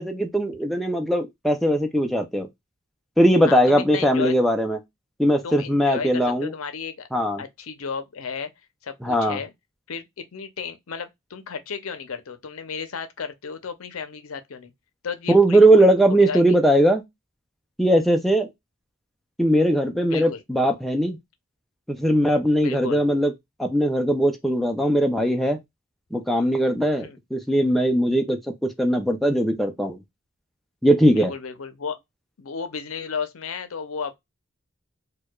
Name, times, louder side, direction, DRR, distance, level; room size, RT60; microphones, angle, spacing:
voice 1, 0.0-2.5 3.2-4.8 5.2-6.5 7.1-7.4 9.0-9.4 15.3-17.0 17.8-18.5 19.4-21.2 21.9-23.3 23.6-25.6 26.1-30.0 30.8-31.3, right 1 dB, ahead, 0.4 m, -20 dB
voice 2, 3.4-4.4 5.4-7.1 7.4-8.5 8.8-9.5 9.9-14.7 15.0-16.6 20.0-20.4 22.6-23.0 27.0-27.2 31.1-32.0 32.4-34.2, left 6 dB, 80° left, 0.6 m, -33 dB
4.4 x 2.3 x 2.2 m
head